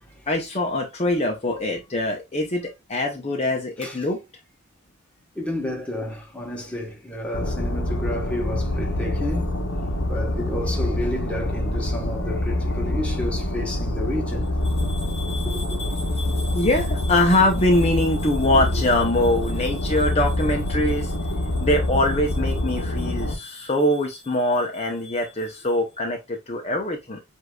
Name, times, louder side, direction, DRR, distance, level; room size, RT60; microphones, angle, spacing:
voice 1, 0.3-4.2 14.6-27.2, left 1 dB, 30° left, 0.7 m, -24 dB
voice 2, 5.3-9.6 10.1-14.5, left 1 dB, 5° left, 1.1 m, -30 dB
sound 1, 7.3-23.3, left 1 dB, 70° left, 1.0 m, -26 dB
7.8 x 2.7 x 2.3 m
head